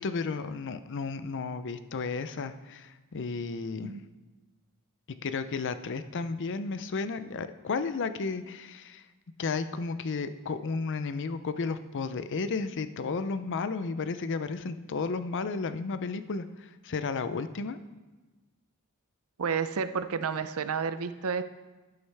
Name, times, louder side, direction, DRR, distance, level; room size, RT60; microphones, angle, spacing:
voice 1, 0.0-3.9 5.2-9.0 9.4-17.8, left 4 dB, 55° left, 12 dB, 0.6 m, -33 dB
voice 2, 19.4-21.4, right 6 dB, 70° right, 11 dB, 0.6 m, -30 dB
11.5 x 11.0 x 3.4 m, 1.2 s
head